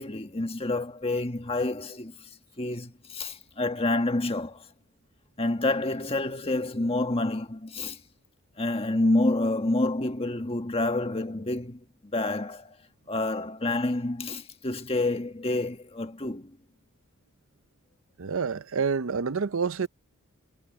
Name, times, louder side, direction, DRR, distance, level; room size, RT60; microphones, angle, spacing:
voice 1, 0.0-2.1 2.6-4.7 5.4-8.0 8.6-11.8 12.1-12.7 13.1-16.6, left 2 dB, 25° left, 1.5 m, -28 dB
voice 2, 18.2-19.9, right 5 dB, 60° right, 0.6 m, -28 dB
head